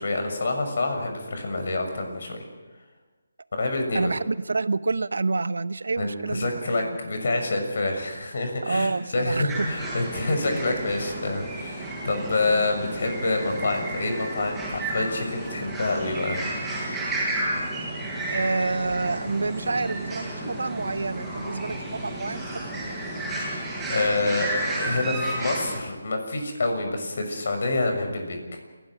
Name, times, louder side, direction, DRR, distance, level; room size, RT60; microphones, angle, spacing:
voice 1, 0.0-2.5 3.5-4.1 6.0-16.4 23.9-28.4, left 2 dB, 55° left, 5 dB, 6.3 m, -27 dB
voice 2, 3.9-7.0 8.6-9.7 18.3-22.4 22.7-22.8, right 3 dB, 70° right, 15 dB, 0.9 m, -28 dB
sound 1, 9.5-25.8, right 1 dB, 5° right, 7.7 m, -32 dB
29.0 x 16.5 x 6.2 m, 1.3 s
figure-of-eight pair, 155°, 0 cm